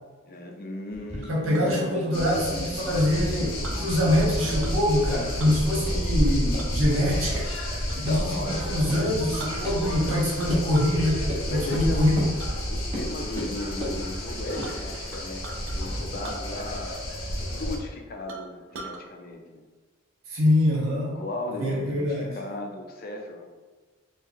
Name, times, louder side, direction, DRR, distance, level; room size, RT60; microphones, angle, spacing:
voice 1, 0.3-2.0 3.7-3.9 8.0-8.9 10.0-10.2 11.5-12.1 12.7-19.6 21.1-23.5, left 1 dB, 45° left, 3 dB, 0.5 m, -36 dB
sound 1, 0.9-3.7 4.0-4.7 5.1-5.2 5.5-5.6 5.9-6.0 6.5-6.6 6.9-7.0 7.3-7.4 7.8-8.2 8.5-8.6 8.9-9.0 9.6-9.7 10.1-10.2 10.5-10.6 11.3-11.4 11.7-11.9 12.2-12.3 12.9-13.1 13.4-14.0 14.5-16.0, left 1 dB, 30° right, 0.9 m, -37 dB
Chink clink, 1.2-1.7 3.0-3.8 4.6-4.9 5.2-5.6 6.6-8.1 8.4-8.6 9.1-9.2 9.4-10.0 10.4-11.0 11.4-11.7 12.4-12.5 13.0-13.4 13.8-13.9 14.1-15.8 16.2-17.0 17.2-17.3 17.8-17.9 18.3-19.0, right 3 dB, 70° right, 0.5 m, -42 dB
voice 2, 1.3-7.4 7.9-12.2 20.3-21.2 21.6-22.3, left 1 dB, 85° right, -4 dB, 1.3 m, -24 dB
sound 2, 2.1-17.8, equal, 85° left, 0.9 m, -30 dB
4.4 x 2.2 x 3.6 m, 1.3 s
head